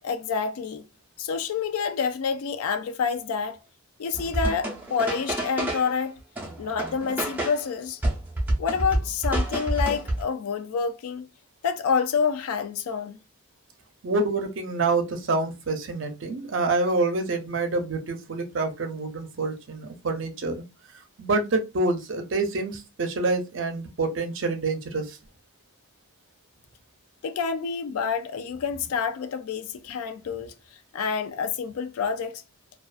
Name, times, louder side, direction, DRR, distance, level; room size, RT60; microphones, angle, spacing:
voice 1, 0.0-0.8 1.2-3.6 4.0-6.2 6.6-8.0 8.6-11.2 11.6-13.2 27.2-30.5 30.9-32.4, left 6 dB, 85° left, 0.4 m, -28 dB
sound 1, 4.1-6.0 6.4-7.7 8.0-10.2, right 1 dB, 10° right, 0.5 m, -28 dB
voice 2, 14.0-20.6 21.2-25.2, right 3 dB, 60° right, 0.5 m, -27 dB
2.4 x 2.3 x 2.4 m
head